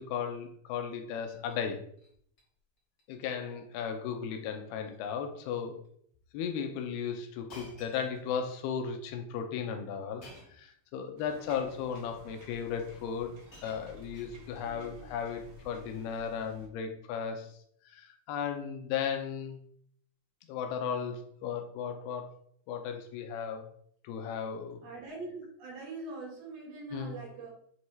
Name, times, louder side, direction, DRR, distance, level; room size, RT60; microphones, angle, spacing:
voice 1, 0.0-1.8 3.1-5.8 6.3-10.2 10.6-13.3 13.6-17.5 17.9-19.6 20.5-22.3 22.7-23.7 24.0-24.9 26.9-27.2, left 7 dB, 90° left, 5 dB, 2.7 m, -35 dB
Shatter, 1.2-1.6 2.0-2.4 2.8-3.0 3.3-3.4 4.3-4.5 4.8-5.1 5.8-5.9 7.5-8.6 10.2-10.7 11.7-11.8 12.8-12.9 13.2-14.7 15.7-15.9, left 1 dB, 40° left, 1.9 m, -55 dB
sound 1, 11.2-16.7, right 2 dB, 60° right, 1.8 m, -53 dB
voice 2, 24.8-27.5, right 3 dB, 75° right, -3 dB, 4.1 m, -42 dB
8.1 x 3.1 x 4.6 m, 0.65 s
omnidirectional pair, 4.5 m